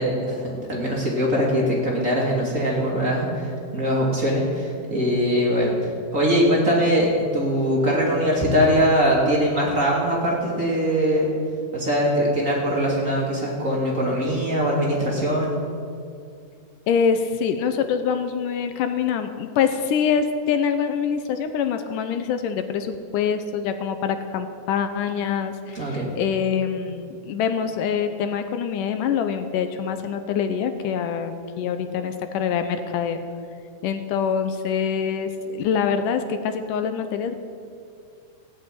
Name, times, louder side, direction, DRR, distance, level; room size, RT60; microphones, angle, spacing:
voice 1, 0.0-5.7 6.1-11.3 11.7-15.6 25.7-26.1, equal, 25° right, -3 dB, 2.7 m, -22 dB
voice 2, 16.9-33.2 33.8-37.3, left 7 dB, 85° left, 9 dB, 2.4 m, -25 dB
16.0 x 8.5 x 9.3 m, 2.3 s
omnidirectional pair, 3.8 m